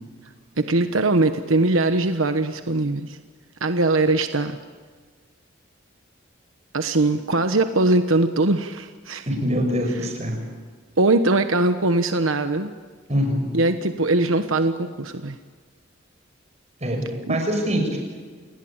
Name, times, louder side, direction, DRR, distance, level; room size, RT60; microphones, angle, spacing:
voice 1, 0.6-3.2 3.6-4.6 6.7-9.2 11.0-12.7 13.5-15.4 17.3-17.4, right 2 dB, 85° right, 8 dB, 1.2 m, -21 dB
voice 2, 9.3-10.4 13.1-13.5 16.8-17.0 17.3-18.0, equal, 35° right, 4 dB, 6.2 m, -23 dB
29.0 x 20.0 x 9.0 m, 1.5 s
head